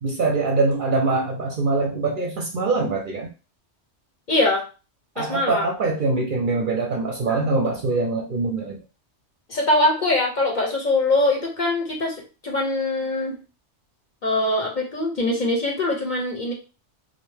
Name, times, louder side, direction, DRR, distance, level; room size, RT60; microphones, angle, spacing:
voice 1, 0.0-3.3 5.2-8.8, right 3 dB, 55° right, 0 dB, 0.6 m, -23 dB
voice 2, 4.3-4.6 5.2-5.7 9.5-13.4 14.2-16.5, left 2 dB, 50° left, -1 dB, 0.6 m, -22 dB
2.6 x 2.1 x 3.1 m, 0.33 s
omnidirectional pair, 1.2 m